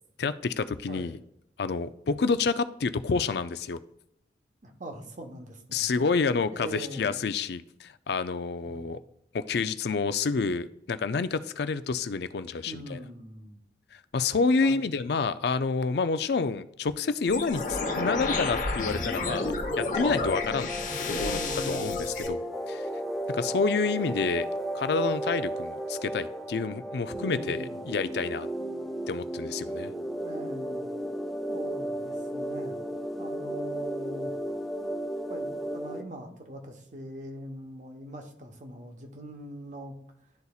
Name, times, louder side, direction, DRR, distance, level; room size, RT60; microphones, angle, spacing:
voice 1, 0.2-1.2 1.6-3.8 5.7-9.0 9.3-13.0 13.9-20.7 21.1-21.4 21.7-22.9 23.3-24.5 24.7-28.5 29.1-29.9, left 4 dB, 65° left, 12 dB, 0.4 m, -29 dB
voice 2, 4.6-6.1 6.5-7.2 8.6-8.9 12.7-13.6 14.6-14.7 21.0-22.1 27.1-27.8 30.2-30.9 31.5-32.8 33.2-34.3 35.3-39.9, right 1 dB, 45° right, 5 dB, 1.1 m, -42 dB
sound 1, 17.3-22.3, left 3 dB, 45° left, 1.1 m, -31 dB
sound 2, 18.9-36.0, equal, ahead, 0.7 m, -34 dB
11.5 x 4.1 x 2.4 m, 0.78 s
head